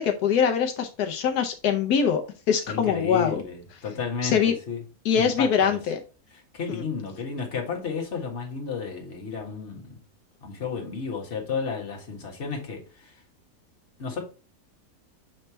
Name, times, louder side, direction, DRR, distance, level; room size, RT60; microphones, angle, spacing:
voice 1, 0.0-2.2 2.5-3.4 4.2-4.5 5.0-6.0 6.7-6.8, left 7 dB, 85° left, 1.3 m, -23 dB
voice 2, 2.7-4.8 5.1-5.8 6.5-10.0 10.4-13.2 14.0-14.2, left 5 dB, 50° left, 1.8 m, -32 dB
7.1 x 3.3 x 4.3 m
omnidirectional pair, 1.6 m